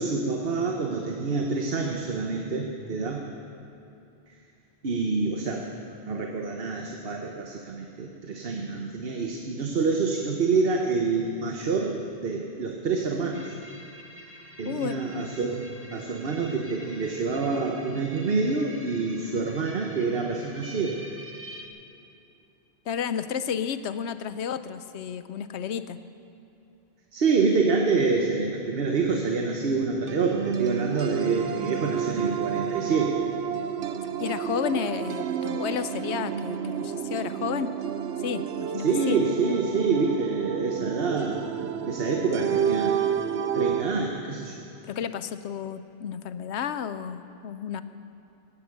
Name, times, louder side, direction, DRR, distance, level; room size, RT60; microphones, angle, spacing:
voice 1, 0.0-3.2 4.8-5.7 6.1-13.5 14.6-21.0 27.1-33.2 38.8-41.5 41.9-43.0 43.5-44.6, right 4 dB, 60° right, 2 dB, 1.2 m, -27 dB
sound 1, 13.3-21.7, equal, 10° right, 1.2 m, -46 dB
voice 2, 14.6-15.0 22.9-26.0 34.2-37.7 38.2-39.2 44.9-47.8, left 8 dB, 90° left, 12 dB, 1.0 m, -32 dB
sound 2, 30.1-43.8, right 8 dB, 75° right, 0.9 m, -30 dB
17.5 x 11.0 x 6.7 m, 2.8 s
omnidirectional pair, 1.1 m